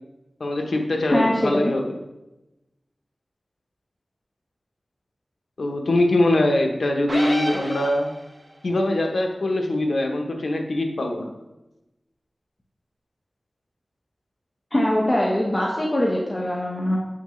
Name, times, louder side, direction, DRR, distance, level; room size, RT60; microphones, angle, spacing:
voice 1, 0.4-2.0 5.6-8.1 8.6-11.3, left 1 dB, 85° left, 3 dB, 0.9 m, -22 dB
voice 2, 1.0-1.7 14.7-17.0, left 1 dB, 25° left, -3 dB, 1.1 m, -22 dB
sound 1, 7.1-8.5, right 1 dB, 45° right, 1.3 m, -30 dB
7.3 x 5.9 x 3.2 m, 0.97 s
wide cardioid pair, 70°, 0 cm